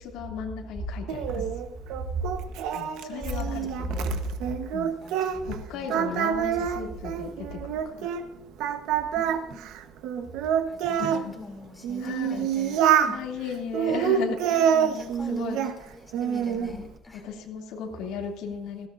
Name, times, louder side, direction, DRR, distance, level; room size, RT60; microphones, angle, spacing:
voice 1, 0.0-1.4 2.7-4.2 4.7-4.9 5.2-8.1 11.0-11.3 12.0-12.5 13.1-15.6 16.5-16.8 17.1-18.9, left 6 dB, 80° left, 0 dB, 2.8 m, -36 dB
Singing, 1.1-5.6 5.9-8.2 8.6-11.2 11.8-13.2 13.7-15.8 16.1-16.7, right 9 dB, 70° right, 1.1 m, -26 dB
voice 2, 3.4-4.2 5.0-6.0 6.6-7.0 9.1-9.7 10.7-13.2 13.9-14.0 14.5-17.3, equal, 10° left, 0 dB, 2.9 m, -39 dB
19.5 x 16.5 x 2.6 m, 0.87 s
cardioid pair, 170°, 0 cm